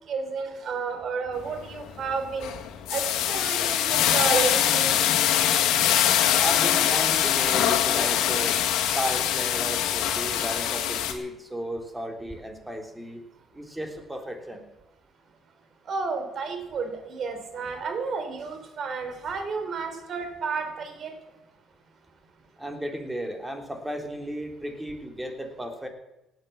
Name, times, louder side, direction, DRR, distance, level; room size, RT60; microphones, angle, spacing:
voice 1, 0.1-2.5 2.9-4.9 15.9-21.1, right 5 dB, 55° right, 7 dB, 3.7 m, -31 dB
sound 1, 1.4-1.7 2.1-11.1, left 10 dB, 85° left, 2.0 m, -23 dB
voice 2, 6.4-8.6 8.9-13.2 13.5-14.7 22.6-25.9, equal, 10° right, 4 dB, 3.5 m, -34 dB
18.0 x 9.2 x 7.2 m, 0.92 s
supercardioid pair, 80°, 0 cm